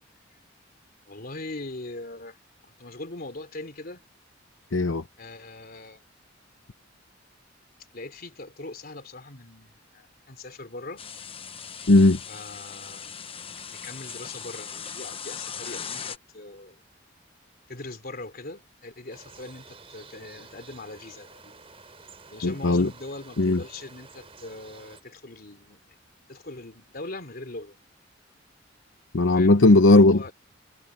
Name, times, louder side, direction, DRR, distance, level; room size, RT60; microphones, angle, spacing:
voice 1, 1.0-2.4 2.8-4.0 5.2-6.0 7.9-11.0 12.3-16.8 17.7-21.6 22.3-25.9 26.3-27.8 29.3-29.6 29.9-30.3, left 2 dB, 50° left, 3.3 m, -41 dB
voice 2, 4.7-5.0 11.9-12.2 22.4-22.9 23.4-23.6 29.1-30.3, left 2 dB, 90° left, 0.8 m, -17 dB
sound 1, 11.0-16.2, left 7 dB, 30° left, 1.1 m, -39 dB
sound 2, 19.1-25.0, right 4 dB, 30° right, 4.5 m, -50 dB
head